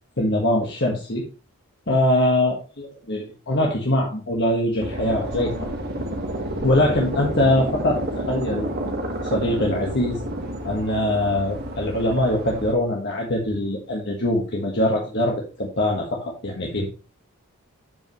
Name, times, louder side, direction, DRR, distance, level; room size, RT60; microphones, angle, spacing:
voice 1, 0.2-1.2 1.9-5.7 6.6-8.0 8.3-8.7 9.2-10.2 10.6-16.9, left 1 dB, 50° left, -1 dB, 1.5 m, -22 dB
sound 1, 4.8-12.7, right 1 dB, 45° right, 1.7 m, -30 dB
12.5 x 5.3 x 3.1 m, 0.35 s
head